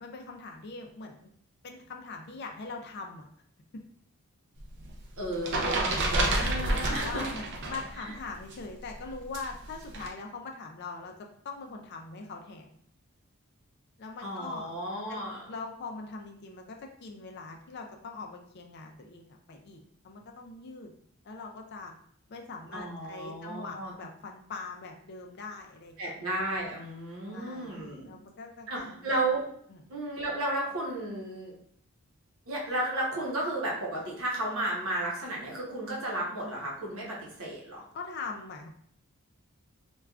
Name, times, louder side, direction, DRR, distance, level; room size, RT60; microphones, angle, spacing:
voice 1, 0.0-1.3 1.6-3.3 6.6-12.8 14.0-14.7 15.1-15.2 15.5-20.9 21.2-21.9 22.3-26.1 27.2-27.7 28.1-29.2 29.7-29.8 37.9-38.7, left 4 dB, 50° left, 2 dB, 0.4 m, -42 dB
sound 1, 4.6-7.9 8.2-10.1, right 1 dB, 50° right, 0.4 m, -30 dB
voice 2, 5.2-7.2 8.0-8.1 14.2-15.4 22.7-23.9 26.0-28.1 28.7-29.4 29.9-31.5 32.5-37.8, right 1 dB, 70° right, -3 dB, 0.9 m, -33 dB
3.3 x 2.3 x 2.3 m, 0.64 s
head